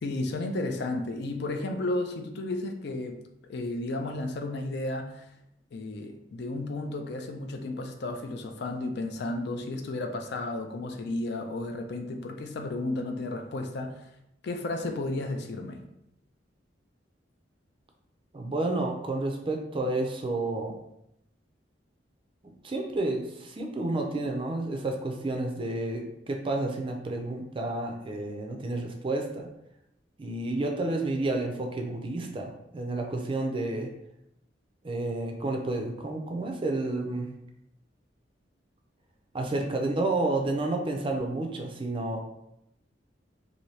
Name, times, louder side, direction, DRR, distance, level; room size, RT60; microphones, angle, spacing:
voice 1, 0.0-3.2 3.5-5.3 5.7-14.0 14.4-15.8, left 2 dB, 60° left, 5 dB, 0.4 m, -33 dB
voice 2, 18.3-20.8 22.6-29.5 30.2-33.9 34.8-37.3 39.3-42.2, right 2 dB, 30° right, 2 dB, 0.4 m, -30 dB
2.8 x 2.6 x 3.1 m, 0.80 s
head